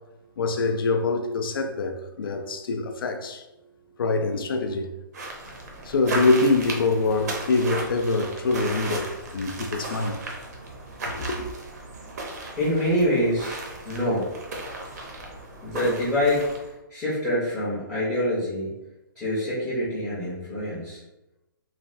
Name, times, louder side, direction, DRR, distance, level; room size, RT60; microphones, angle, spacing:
voice 1, 0.4-3.4 4.0-4.9 5.9-10.2 11.1-11.5, left 3 dB, 80° left, 0.4 m, -24 dB
sound 1, 5.1-16.7, right 2 dB, 50° right, 0.6 m, -36 dB
voice 2, 12.6-14.3 15.6-16.5 16.9-18.7 19.1-21.0, equal, 5° left, 0.5 m, -25 dB
3.2 x 2.2 x 2.5 m
hypercardioid pair, 170°, 12 cm